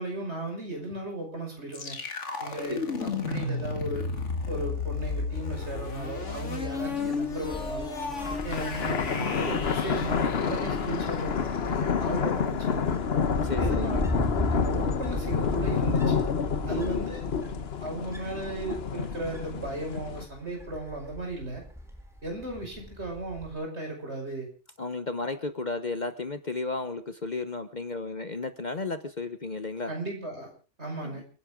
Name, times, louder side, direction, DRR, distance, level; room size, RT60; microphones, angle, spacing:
voice 1, 0.0-2.0 2.4-4.0 4.5-7.9 8.4-13.0 13.6-14.0 14.5-16.2 16.7-17.2 17.8-21.6 22.2-24.5 29.9-30.5 30.8-31.2, right 2 dB, 65° right, 1 dB, 6.1 m, -36 dB
sound 1, 1.7-11.6, left 4 dB, 80° left, 2.3 m, -33 dB
voice 2, 2.7-3.1 13.4-14.0 16.7-17.2 24.8-29.9 31.0-31.2, left 3 dB, 40° left, 10 dB, 1.1 m, -34 dB
sound 2, 6.0-6.1 6.4-6.5 7.0-7.4 8.1-20.2, left 7 dB, 60° left, 1.2 m, -29 dB
Wind, 7.3-23.5, equal, ahead, 3.6 m, -37 dB
28.5 x 11.0 x 3.7 m, 0.35 s
omnidirectional pair, 1.2 m